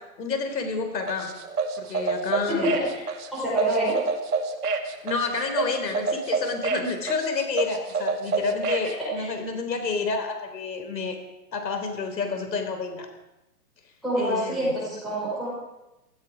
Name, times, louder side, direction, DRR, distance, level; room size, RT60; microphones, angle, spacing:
voice 1, 0.2-1.3 1.8-2.8 5.0-11.2 11.5-13.1 14.2-14.7, left 4 dB, 90° left, 6 dB, 3.7 m, -29 dB
sound 1, 1.1-8.9, right 4 dB, 70° right, 2.4 m, -28 dB
voice 2, 2.5-3.0 3.3-3.9 9.0-9.3 14.0-15.5, equal, ahead, -10 dB, 5.5 m, -26 dB
17.0 x 15.0 x 5.0 m, 0.99 s
hypercardioid pair, 180°, 48 cm